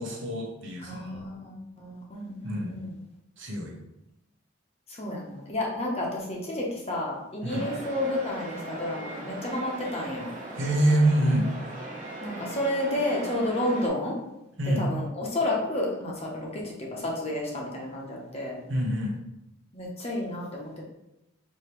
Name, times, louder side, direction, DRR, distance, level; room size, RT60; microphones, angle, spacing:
voice 1, 0.0-1.2 2.4-2.8 3.4-3.7 7.4-7.7 10.6-11.5 14.6-14.9 18.7-19.1, right 1 dB, 65° right, -1 dB, 0.9 m, -26 dB
voice 2, 0.8-2.9 4.9-10.3 12.2-14.2 14.6-18.6 19.7-20.8, left 1 dB, 30° left, -2 dB, 0.9 m, -31 dB
sound 1, 7.5-13.9, right 2 dB, 40° right, 1.0 m, -39 dB
4.9 x 2.8 x 3.1 m, 0.90 s
head